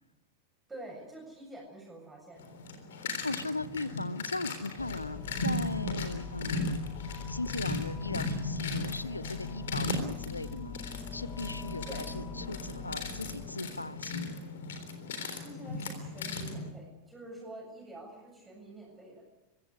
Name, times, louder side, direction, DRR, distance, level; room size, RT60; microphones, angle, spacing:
voice 1, 0.7-2.5 11.9-12.1 15.3-19.2, right 1 dB, 10° right, -1 dB, 7.6 m, -47 dB
sound 1, 2.4-16.7, left 2 dB, 60° left, 3.7 m, -37 dB
voice 2, 3.2-6.8 7.3-10.8 11.1-14.4, left 2 dB, 80° left, 18 dB, 0.9 m, -38 dB
sound 2, 4.8-13.5, left 7 dB, 25° left, 1.6 m, -44 dB
24.5 x 16.0 x 9.8 m, 1.0 s
figure-of-eight pair, 90°, 0 cm